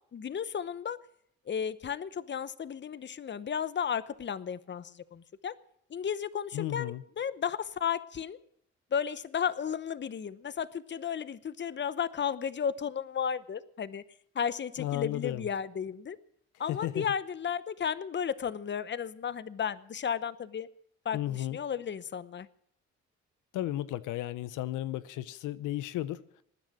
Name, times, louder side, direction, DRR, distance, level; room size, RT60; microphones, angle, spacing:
voice 1, 0.1-1.0 1.5-5.5 5.9-8.4 8.9-14.0 14.3-16.2 16.6-20.7 21.0-22.5, left 7 dB, 40° left, 0.9 m, -34 dB
voice 2, 6.5-7.0 14.8-15.4 16.7-17.1 21.1-21.6 23.5-26.2, left 14 dB, 85° left, 0.8 m, -34 dB
20.0 x 9.6 x 6.2 m
cardioid pair, 90°, 30 cm